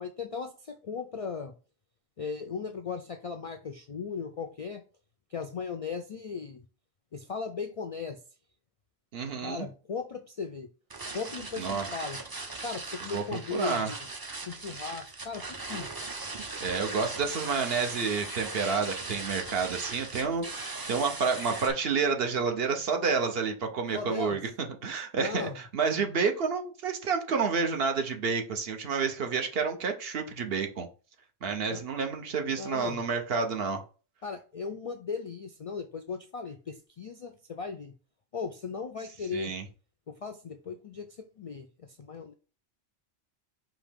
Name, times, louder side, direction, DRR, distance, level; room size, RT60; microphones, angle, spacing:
voice 1, 0.0-1.5 2.2-4.8 5.3-6.6 7.1-8.2 9.4-10.7 11.1-12.2 12.6-14.1 14.5-15.9 23.9-24.4 25.1-25.6 31.7-31.8 32.5-33.0 34.2-37.9 38.3-39.5 40.1-42.3, left 5 dB, 60° left, 6 dB, 0.3 m, -37 dB
voice 2, 9.1-9.7 11.6-11.9 13.1-13.2 13.5-13.9 16.6-24.4 24.8-30.9 31.4-33.8 39.3-39.6, right 5 dB, 65° right, 5 dB, 1.0 m, -29 dB
sound 1, 10.9-21.7, right 3 dB, 30° right, 0.5 m, -39 dB
5.0 x 2.9 x 3.5 m, 0.36 s
omnidirectional pair, 1.1 m